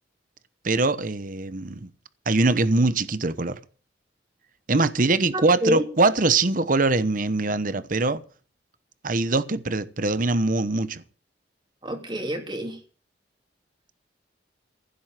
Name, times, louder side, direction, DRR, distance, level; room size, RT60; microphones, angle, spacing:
voice 1, 0.6-1.9 2.3-3.6 4.7-8.2 9.0-11.0, right 3 dB, 45° right, 1.0 m, -22 dB
voice 2, 5.3-5.9 11.8-12.8, equal, 25° right, 3.1 m, -27 dB
15.5 x 7.8 x 7.5 m
head